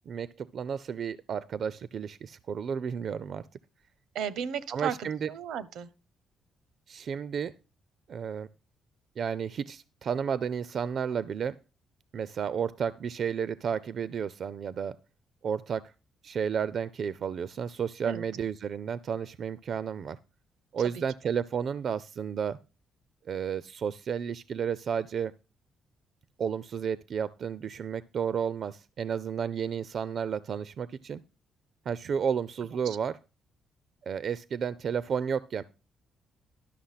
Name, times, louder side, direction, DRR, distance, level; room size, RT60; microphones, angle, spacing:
voice 1, 0.1-3.5 4.7-5.3 6.9-7.6 8.1-8.5 9.2-11.6 12.1-15.0 15.4-15.9 16.2-20.2 20.7-22.6 23.3-25.3 26.4-31.2 31.9-33.2 34.1-35.6, right 7 dB, 55° right, 0.4 m, -32 dB
voice 2, 4.1-5.9 18.0-18.2 32.8-33.0, right 8 dB, 85° right, 0.8 m, -34 dB
12.0 x 6.0 x 5.7 m
cardioid pair, 90°, 0 cm